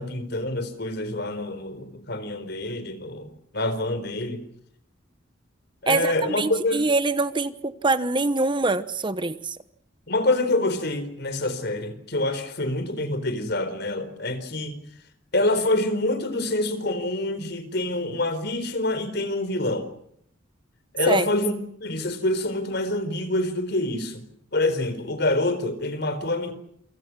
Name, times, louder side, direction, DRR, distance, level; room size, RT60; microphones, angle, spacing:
voice 1, 0.0-4.4 5.8-6.8 10.1-14.8 15.3-19.9 20.9-21.5 21.8-24.2 24.5-26.5, left 2 dB, 55° left, 4.4 m, -26 dB
voice 2, 5.9-9.6 21.1-21.2, right 3 dB, 25° right, 1.0 m, -24 dB
28.5 x 26.0 x 6.3 m
head